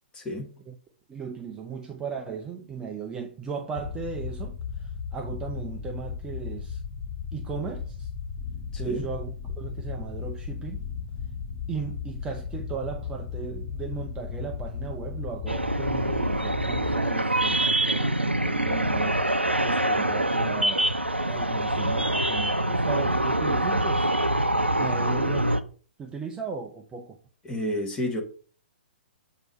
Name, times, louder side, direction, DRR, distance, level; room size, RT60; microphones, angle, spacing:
voice 1, 0.1-0.5 8.7-9.1 27.4-28.2, left 1 dB, 15° left, 1.3 m, -30 dB
voice 2, 1.1-6.8 7.3-8.1 8.8-10.9 11.7-20.9 21.2-24.1 24.8-25.5 26.0-27.2, right 6 dB, 15° right, 0.5 m, -37 dB
sound 1, 3.8-16.9, left 6 dB, 35° left, 2.1 m, -35 dB
sound 2, 15.5-25.6, right 1 dB, 90° right, 0.5 m, -25 dB
7.7 x 2.8 x 4.4 m
figure-of-eight pair, 120°, 6 cm